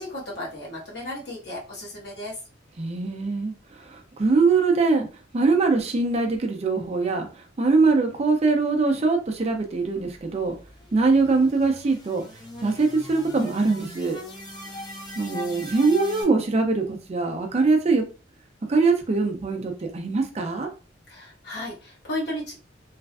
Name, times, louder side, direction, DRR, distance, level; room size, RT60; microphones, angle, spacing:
voice 1, 0.0-2.4 21.1-22.5, left 1 dB, 60° left, 1.3 m, -34 dB
voice 2, 2.8-5.1 5.3-10.6 10.9-12.2 12.6-14.2 15.2-18.0 18.6-20.7, right 3 dB, 35° right, 0.4 m, -22 dB
sound 1, 9.8-16.2, left 1 dB, 20° left, 0.7 m, -40 dB
3.2 x 2.4 x 2.3 m
head